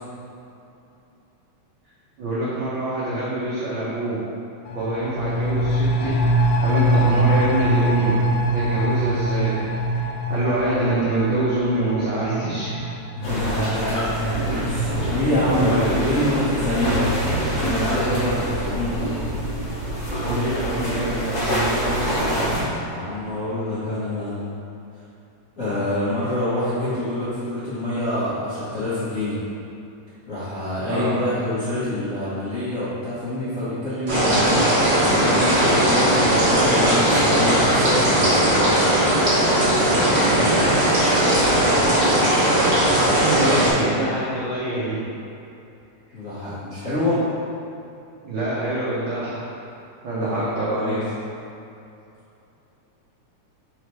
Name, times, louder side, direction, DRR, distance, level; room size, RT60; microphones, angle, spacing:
voice 1, 2.2-4.2 4.7-6.3 6.6-8.2 8.5-9.6 9.9-12.8 15.4-15.9 20.2-22.5 30.9-31.2 40.3-41.2 43.2-45.0 46.6-46.7 48.2-49.4 50.0-51.0, right 1 dB, 80° right, -8 dB, 1.0 m, -25 dB
sound 1, 4.7-14.1 14.4-14.5, right 1 dB, 85° left, 2.1 m, -23 dB
voice 2, 13.1-19.0 22.8-24.5 25.6-29.4 30.3-34.5 35.0-38.8 43.5-43.6 46.1-47.2 50.2-51.0, left 1 dB, 60° left, -13 dB, 0.8 m, -26 dB
sound 2, 13.2-22.6, right 1 dB, 40° left, 1.6 m, -25 dB
sound 3, 34.1-43.7, right 1 dB, 40° right, 1.8 m, -18 dB
4.9 x 4.1 x 4.7 m, 2.7 s
omnidirectional pair, 3.4 m